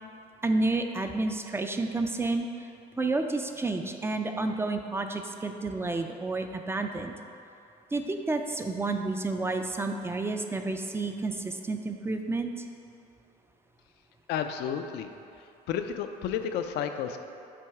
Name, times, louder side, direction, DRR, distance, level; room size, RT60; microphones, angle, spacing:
voice 1, 0.4-2.7 3.0-7.1 7.9-12.5, right 3 dB, 15° right, 5 dB, 0.3 m, -30 dB
voice 2, 14.3-15.1 15.4-17.2, left 8 dB, 80° left, 7 dB, 0.4 m, -32 dB
7.5 x 3.1 x 4.7 m, 2.6 s
cardioid pair, 110°, 17 cm